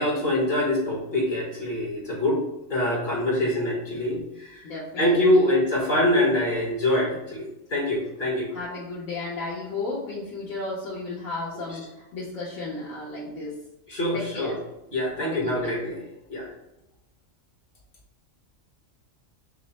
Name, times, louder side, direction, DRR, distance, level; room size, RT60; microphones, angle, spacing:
voice 1, 0.0-2.4 2.7-4.6 5.0-8.5 13.9-14.5 14.9-16.0 16.3-16.5, left 1 dB, 40° left, -3 dB, 1.3 m, -24 dB
voice 2, 4.6-5.5 8.5-13.5 14.1-14.5 15.2-15.8, left 3 dB, 90° left, -8 dB, 1.4 m, -34 dB
4.8 x 2.1 x 4.1 m, 0.91 s
omnidirectional pair, 1.3 m